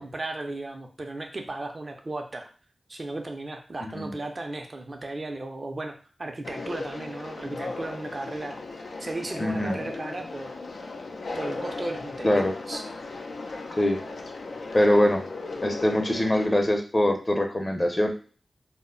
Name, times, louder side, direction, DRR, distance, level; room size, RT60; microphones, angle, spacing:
voice 1, 0.0-2.5 2.9-10.5 11.3-12.8, right 2 dB, 50° right, 3 dB, 0.5 m, -35 dB
voice 2, 3.8-4.2 9.4-9.8 12.2-12.6 13.8-14.0 14.7-15.2 15.6-18.1, left 1 dB, 35° left, 4 dB, 0.7 m, -23 dB
Conversation, 6.4-16.5, left 3 dB, 80° left, 0.4 m, -37 dB
2.1 x 2.0 x 3.8 m, 0.40 s
cardioid pair, 40°, 0 cm